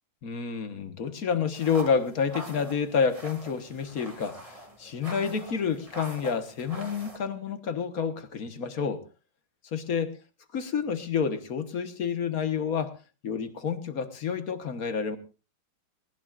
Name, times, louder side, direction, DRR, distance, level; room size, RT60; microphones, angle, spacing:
voice 1, 0.2-9.0 9.7-10.1 10.5-12.9 13.2-15.2, left 6 dB, 55° left, 9 dB, 1.7 m, -29 dB
sound 1, 1.5-7.2, equal, 20° right, 2.3 m, -43 dB
19.5 x 19.0 x 2.5 m, 0.33 s
omnidirectional pair, 2.0 m